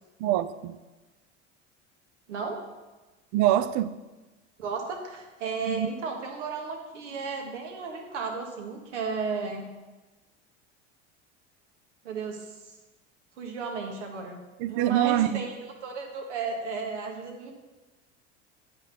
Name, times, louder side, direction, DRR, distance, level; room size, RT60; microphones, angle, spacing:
voice 1, 0.2-0.8 3.3-4.0 5.7-5.9 14.6-15.4, right 13 dB, 55° right, 0.5 m, -25 dB
voice 2, 2.3-2.6 4.6-9.7 12.0-12.6 13.4-14.4 14.7-17.5, right 4 dB, 80° right, 1.3 m, -34 dB
9.7 x 3.9 x 4.1 m
hypercardioid pair, 85°, 35 cm